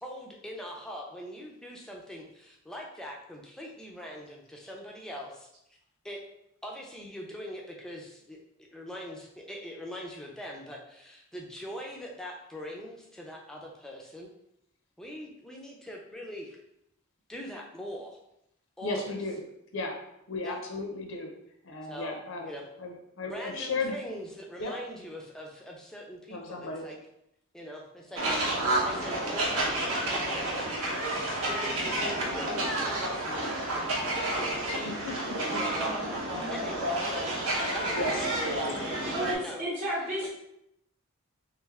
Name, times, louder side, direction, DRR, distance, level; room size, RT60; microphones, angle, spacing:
voice 1, 0.0-5.8 6.0-6.2 6.6-14.3 15.0-16.6 17.3-18.2 18.8-19.0 20.4-20.6 21.9-22.6 23.3-27.0 27.5-34.0 34.5-35.2 35.6-36.0 36.5-37.0 37.5-39.6 40.2-40.3, equal, 5° left, -1 dB, 0.5 m, -42 dB
voice 2, 18.8-19.4 19.7-19.9 20.3-21.3 21.6-22.5 22.8-24.0 24.6-24.7 26.3-26.8 31.0-31.5 33.4-33.5 34.8-35.6 37.9-38.3, left 3 dB, 65° left, 2 dB, 0.6 m, -35 dB
sound 1, 28.2-39.3, right 1 dB, 90° right, 0.9 m, -30 dB
voice 3, 39.1-40.3, equal, 30° right, -6 dB, 0.9 m, -32 dB
3.2 x 3.1 x 3.5 m, 0.80 s
head